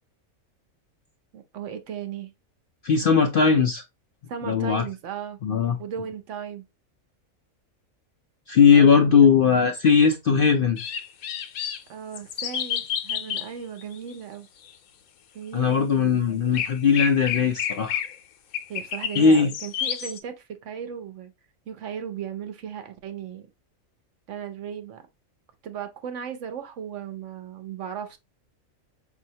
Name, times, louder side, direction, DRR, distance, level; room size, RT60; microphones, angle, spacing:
voice 1, 1.3-2.3 4.3-5.4 5.8-6.7 8.7-9.4 11.9-14.5 15.3-16.6 18.7-21.3 21.7-23.5 24.3-25.0 25.6-28.2, right 8 dB, 65° right, 0.9 m, -36 dB
voice 2, 2.8-3.8 4.5-4.8 5.4-5.8 8.5-10.8 15.5-18.0 19.2-19.5, left 6 dB, 60° left, 0.6 m, -19 dB
sound 1, 10.8-11.8 12.1-13.5 13.8-14.1 14.7-14.8 16.5-18.2 18.5-20.2, left 9 dB, 90° left, 1.1 m, -30 dB
5.2 x 2.7 x 2.7 m
omnidirectional pair, 1.4 m